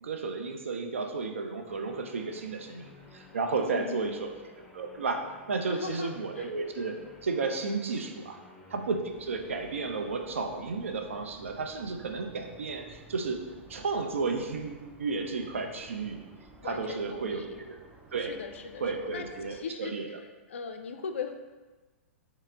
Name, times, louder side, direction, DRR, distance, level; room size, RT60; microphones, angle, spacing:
voice 1, 0.0-2.9 3.1-4.3 4.7-7.0 7.2-8.4 8.7-13.4 13.7-16.2 16.6-17.8 18.1-18.4 18.8-20.1, right 4 dB, 75° right, 4 dB, 0.5 m, -33 dB
Guitar, 1.6-9.0, left 2 dB, 15° left, 0.8 m, -54 dB
voice 2, 3.5-4.3 5.7-6.5 16.6-17.6 18.2-20.1 20.5-21.4, left 6 dB, 70° left, 7 dB, 0.3 m, -39 dB
sound 1, 9.1-19.6, right 3 dB, 20° right, 0.4 m, -53 dB
4.2 x 2.0 x 3.5 m, 1.2 s
figure-of-eight pair, 105°, 7 cm